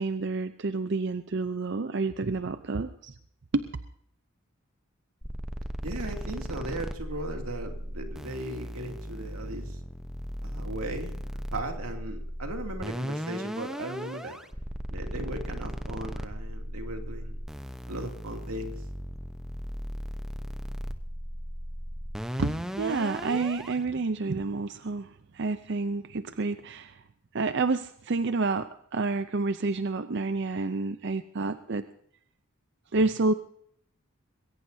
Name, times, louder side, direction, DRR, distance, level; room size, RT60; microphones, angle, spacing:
voice 1, 0.0-3.1 3.5-3.7 22.4-27.0 27.3-31.8 32.9-33.3, right 3 dB, 50° right, 11 dB, 0.6 m, -29 dB
sound 1, 5.2-23.8, equal, ahead, 0.8 m, -37 dB
voice 2, 5.8-9.8 10.4-11.1 11.5-14.4 14.9-17.4 17.9-18.8, right 1 dB, 85° right, 4 dB, 2.7 m, -37 dB
21.0 x 17.5 x 2.7 m, 0.67 s
head